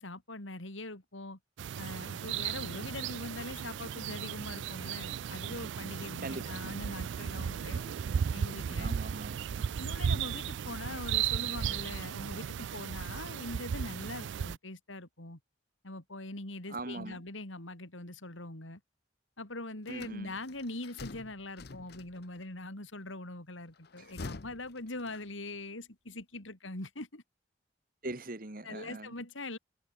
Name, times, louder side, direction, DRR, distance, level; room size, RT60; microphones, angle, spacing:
voice 1, 0.0-1.4 1.8-7.9 8.3-9.0 9.8-15.4 15.8-18.8 19.4-27.2 28.6-29.6, left 2 dB, 85° left, 4.2 m, -42 dB
sound 1, 1.6-14.6, right 8 dB, 70° right, 0.3 m, -35 dB
voice 2, 6.2-6.7 8.7-9.6 16.7-17.2 19.9-20.3 28.0-29.1, right 2 dB, 45° right, 2.0 m, -41 dB
sound 2, 19.9-22.4 23.8-25.6, left 3 dB, 55° left, 0.7 m, -47 dB
head